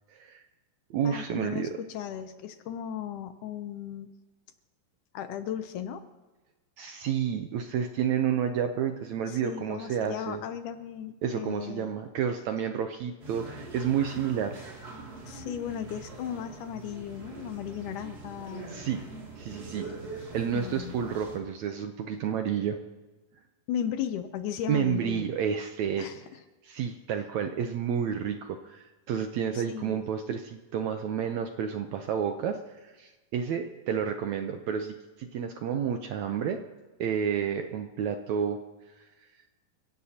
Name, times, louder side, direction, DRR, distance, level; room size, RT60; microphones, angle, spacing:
voice 1, 0.1-0.4 0.9-1.7 6.8-10.4 11.2-14.6 18.7-19.0 19.4-19.9 20.3-22.8 24.7-26.1 26.6-36.6 37.0-38.6 39.0-39.1, right 8 dB, 75° right, 6 dB, 1.7 m, -30 dB
voice 2, 1.0-4.1 5.1-6.1 9.3-11.9 15.3-18.7 20.5-21.0 23.7-25.3 26.0-26.2 29.6-30.1, left 9 dB, 75° left, 9 dB, 2.0 m, -36 dB
sound 1, 13.2-21.4, right 3 dB, 30° right, 2.7 m, -43 dB
29.5 x 16.5 x 2.9 m, 1.2 s
omnidirectional pair, 4.0 m